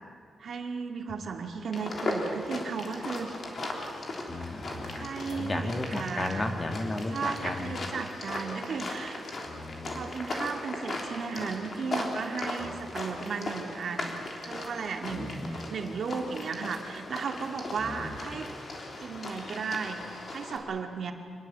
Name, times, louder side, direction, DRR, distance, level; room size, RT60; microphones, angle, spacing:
voice 1, 0.4-3.4 4.9-6.6 7.1-9.2 9.9-18.5 19.0-21.1, right 5 dB, 55° right, 4 dB, 2.2 m, -35 dB
sound 1, 1.7-20.6, left 2 dB, 40° left, 3.4 m, -38 dB
voice 2, 4.3-7.8 9.4-10.1 12.6-12.7 15.1-15.6 17.8-18.4, left 2 dB, 20° left, 5 dB, 1.8 m, -35 dB
25.5 x 20.5 x 8.1 m, 2.1 s
wide cardioid pair, 175°, 0 cm